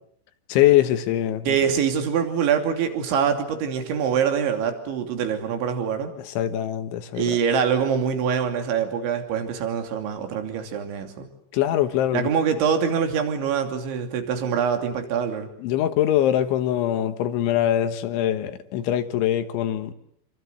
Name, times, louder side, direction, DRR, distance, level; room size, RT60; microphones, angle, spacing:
voice 1, 0.5-1.6 6.2-7.4 11.5-12.3 15.6-19.9, left 12 dB, 80° left, 3.8 m, -23 dB
voice 2, 1.5-6.1 7.1-11.3 12.1-15.5, right 7 dB, 75° right, 5.1 m, -24 dB
27.5 x 25.5 x 8.2 m
omnidirectional pair, 5.4 m